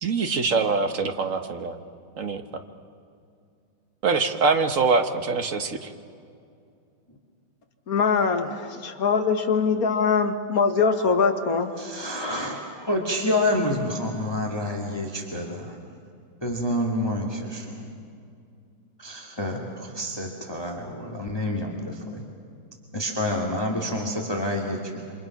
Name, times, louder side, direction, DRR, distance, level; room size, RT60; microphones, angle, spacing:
voice 1, 0.0-1.8 2.2-2.4 4.0-5.9, right 4 dB, 45° right, 7 dB, 1.4 m, -24 dB
voice 2, 7.9-8.5 8.8-11.7, left 5 dB, 50° left, 6 dB, 1.9 m, -22 dB
voice 3, 11.8-15.8 16.4-17.9 19.0-22.2 22.9-25.1, left 1 dB, 15° left, 1 dB, 2.1 m, -28 dB
28.0 x 26.0 x 5.9 m, 2.4 s
omnidirectional pair, 2.1 m